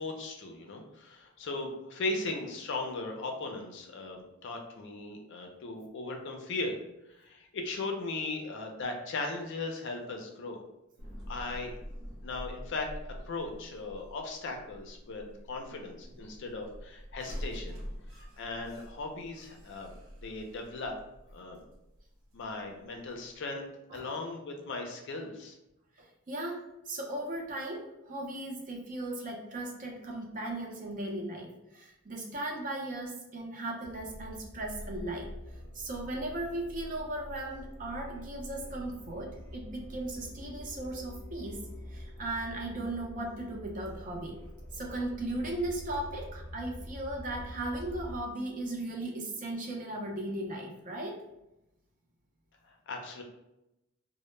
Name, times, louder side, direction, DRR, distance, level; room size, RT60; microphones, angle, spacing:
voice 1, 0.0-6.8 7.1-10.6 11.3-11.7 12.2-12.9 13.3-17.8 18.1-20.9 21.3-21.6 22.3-25.6 52.6-53.2, left 3 dB, 60° left, 2 dB, 0.4 m, -38 dB
sound 1, 11.0-23.4, equal, 85° right, 0.6 m, -46 dB
voice 2, 26.0-35.3 35.7-41.6 41.9-44.4 44.7-51.2, right 1 dB, 40° right, 0 dB, 0.5 m, -37 dB
sound 2, 33.8-48.2, equal, 10° left, 0.7 m, -45 dB
2.0 x 2.0 x 3.1 m, 0.90 s
head